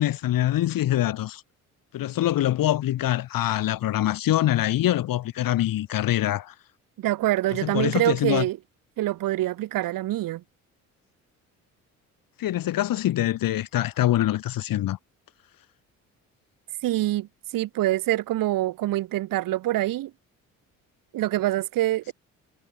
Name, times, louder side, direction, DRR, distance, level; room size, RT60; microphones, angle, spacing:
voice 1, 0.0-1.4 1.9-6.5 7.6-8.5 12.4-15.0, left 13 dB, 50° left, 1.6 m, -24 dB
voice 2, 7.0-8.6 9.0-10.4 16.8-20.1 21.1-22.1, right 15 dB, 50° right, 1.2 m, -25 dB
figure-of-eight pair, 50°, 42 cm